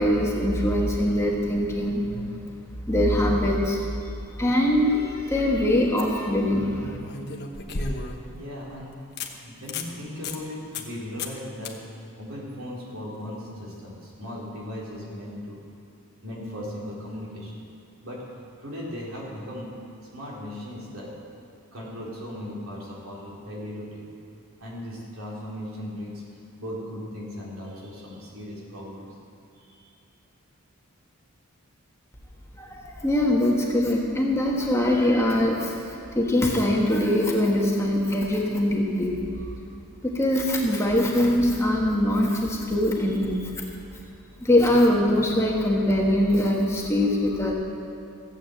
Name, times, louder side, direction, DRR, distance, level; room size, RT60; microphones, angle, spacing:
voice 1, 0.0-2.3 2.9-3.8 4.4-7.0 32.6-39.5 40.0-43.5 44.4-47.5, left 1 dB, 15° left, -2 dB, 1.4 m, -23 dB
sound 1, 5.6-5.7 7.0-8.3 8.7-8.8 9.2-9.3 9.6-9.9 10.2-10.4 10.7-10.9 11.2-11.4 11.7-11.8 14.8-14.9, left 3 dB, 50° left, 1.2 m, -33 dB
voice 2, 8.2-8.9 9.4-11.8 12.2-15.6 16.2-17.6 18.0-18.2 18.6-19.7 20.1-21.1 21.7-24.1 24.6-29.1 29.6-29.9 44.1-44.4, left 1 dB, 65° right, -5 dB, 3.7 m, -37 dB
15.5 x 8.6 x 7.7 m, 2.7 s
head